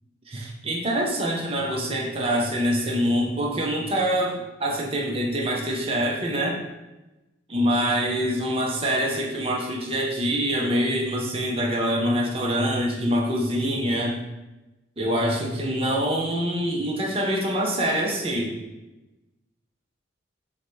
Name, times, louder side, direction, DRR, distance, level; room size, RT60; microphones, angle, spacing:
voice 1, 0.3-6.6 7.5-14.2 15.0-18.5, equal, 30° right, -1 dB, 0.6 m, -25 dB
4.9 x 2.2 x 4.0 m, 1.0 s
head